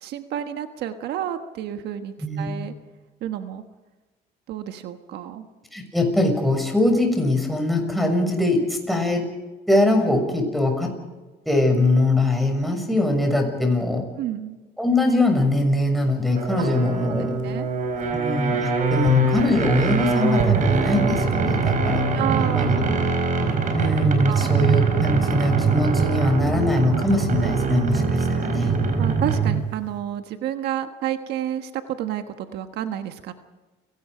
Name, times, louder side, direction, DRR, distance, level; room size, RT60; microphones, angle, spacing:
voice 1, 0.0-2.7 3.2-3.6 4.5-5.5 14.2-14.6 16.6-16.7 17.0-17.1 17.4-17.7 22.1-22.9 24.2-24.6 29.0-33.3, right 10 dB, 80° right, 7 dB, 1.4 m, -30 dB
voice 2, 5.7-9.2 9.7-10.9 11.4-14.0 14.8-17.4 18.1-22.0 22.4-22.8 23.7-28.7, left 2 dB, ahead, 3 dB, 6.6 m, -22 dB
sound 1, 16.3-29.7, right 4 dB, 50° right, 4.8 m, -22 dB
29.5 x 18.5 x 5.1 m, 1.2 s
cardioid pair, 110°, 17 cm